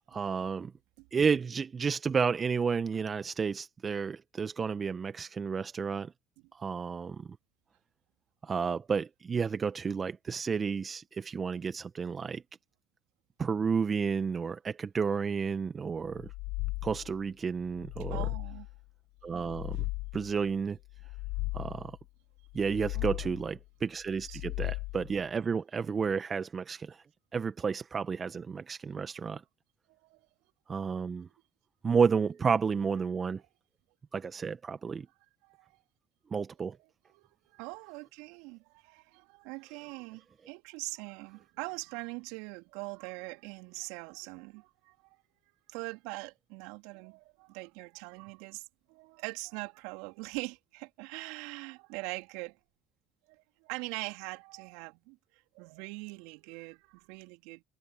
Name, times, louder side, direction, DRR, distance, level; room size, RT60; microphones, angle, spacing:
voice 1, 0.1-0.7 1.1-6.1 6.5-7.3 8.4-12.4 13.4-16.3 16.8-18.3 19.2-19.9 20.1-20.8 21.5-22.0 22.5-27.0 27.3-29.4 30.7-31.3 31.8-33.4 34.1-35.1 36.3-36.8, right 5 dB, 35° right, 1.4 m, -31 dB
sound 1, 16.1-17.2 17.7-18.8 19.3-20.4 20.9-22.0 22.5-23.6 24.1-25.2, left 23 dB, 70° left, 0.7 m, -37 dB
voice 2, 18.1-18.7 22.9-23.3 24.3-24.5 29.9-30.3 35.4-35.7 37.1-45.0 45.7-52.6 53.3-55.2 55.5-57.6, right 27 dB, 70° right, 3.6 m, -42 dB
hypercardioid pair, 60°, 0 cm